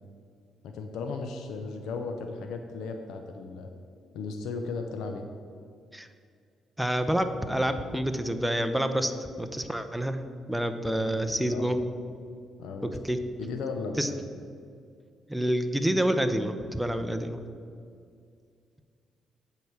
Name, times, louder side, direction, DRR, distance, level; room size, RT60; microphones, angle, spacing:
voice 1, 0.6-3.7 4.1-5.2 10.8-11.7 12.6-13.0 13.4-14.2 16.9-17.1, left 4 dB, 85° left, 4 dB, 0.6 m, -36 dB
voice 2, 6.8-10.2 10.5-11.8 13.0-13.2 14.0-14.1 15.3-17.4, right 1 dB, 5° right, 8 dB, 0.7 m, -28 dB
7.8 x 4.8 x 7.1 m, 2.3 s
cardioid pair, 90°, 0 cm